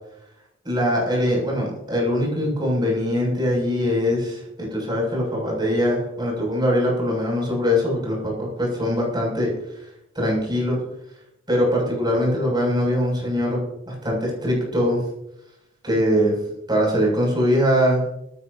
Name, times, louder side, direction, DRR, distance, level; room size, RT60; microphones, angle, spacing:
voice 1, 0.6-9.5 10.2-10.8 11.5-15.0 15.8-16.3 16.7-18.0, equal, 20° right, -3 dB, 7.0 m, -22 dB
19.5 x 16.0 x 2.8 m, 0.83 s
head